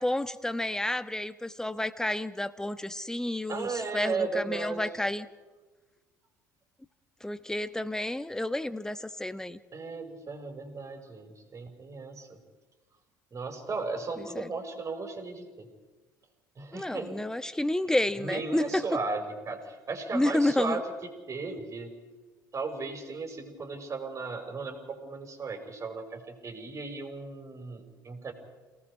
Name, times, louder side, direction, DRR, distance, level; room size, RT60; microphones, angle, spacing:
voice 1, 0.0-5.3 7.2-9.6 14.3-14.5 16.7-18.8 20.1-20.8, left 1 dB, 5° left, 13 dB, 1.2 m, -30 dB
voice 2, 3.5-4.9 9.7-12.4 13.3-15.7 16.6-17.2 17.9-20.8 21.3-21.9 22.5-28.3, right 4 dB, 30° right, 4 dB, 5.4 m, -36 dB
29.0 x 18.5 x 5.0 m, 1.2 s
figure-of-eight pair, 65°, 10 cm